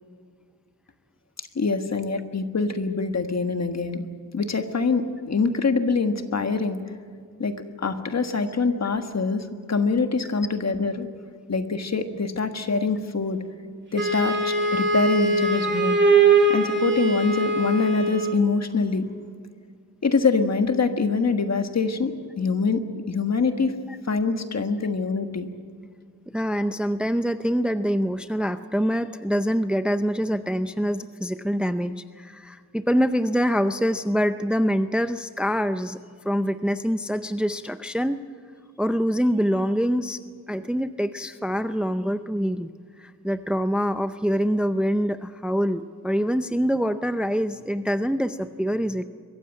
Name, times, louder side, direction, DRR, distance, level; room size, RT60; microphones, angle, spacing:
voice 1, 1.4-4.0 4.3-6.8 7.4-11.1 11.5-13.4 13.9-16.0 16.5-19.1 20.0-22.8 23.1-23.7 24.1-25.5, left 4 dB, 50° left, 7 dB, 1.6 m, -24 dB
Wind instrument woodwind instrument, 14.0-18.4, right 3 dB, 35° right, 3.0 m, -21 dB
voice 2, 26.3-36.0 36.2-38.2 38.8-40.2 40.5-42.7 43.0-49.0, equal, 5° right, 10 dB, 0.5 m, -25 dB
23.0 x 15.0 x 9.0 m, 2.1 s
wide cardioid pair, 135°, 33 cm